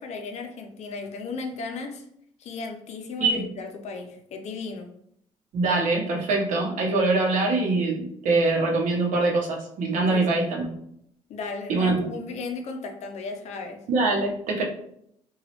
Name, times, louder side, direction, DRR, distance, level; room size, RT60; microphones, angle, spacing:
voice 1, 0.0-2.0 2.4-4.9 10.1-10.5 11.3-13.8, left 4 dB, 60° left, 4 dB, 0.5 m, -35 dB
voice 2, 5.5-10.7 11.7-12.1 13.9-14.6, right 3 dB, 70° right, 0 dB, 0.8 m, -23 dB
3.0 x 2.3 x 2.8 m, 0.71 s
cardioid pair, 130°, 13 cm